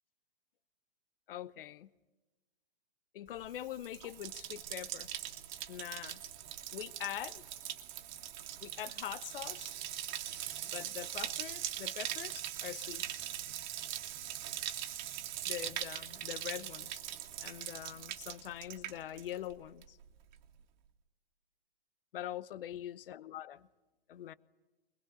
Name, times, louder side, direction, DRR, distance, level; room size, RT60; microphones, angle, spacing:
voice 1, 1.3-1.9 3.1-5.1 5.7-6.2 6.7-7.4 8.6-9.7 10.6-13.1 15.5-17.0 17.4-20.0 22.1-23.7 24.1-24.3, left 12 dB, 65° left, 0.9 m, -43 dB
Bathtub (filling or washing), 3.4-19.5 19.8-20.3, right 12 dB, 45° right, 2.1 m, -41 dB
23.0 x 21.5 x 9.0 m
hypercardioid pair, 145°, 30 cm